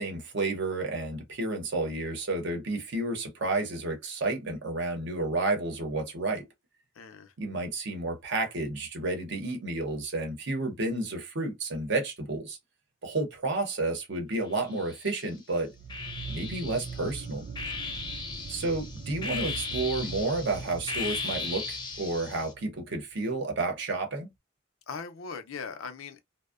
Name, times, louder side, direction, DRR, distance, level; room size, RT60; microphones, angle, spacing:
voice 1, 0.0-6.4 7.4-12.6 13.0-15.7 16.3-17.4 18.5-24.3, right 2 dB, 60° right, 0.8 m, -31 dB
voice 2, 7.0-7.3 18.5-18.6 24.9-26.2, left 5 dB, 75° left, 0.5 m, -40 dB
sound 1, 14.5-15.3 15.9-22.5, left 4 dB, 20° left, 0.5 m, -37 dB
sound 2, 15.7-23.0, right 4 dB, 40° right, 0.4 m, -41 dB
2.6 x 2.0 x 2.3 m
head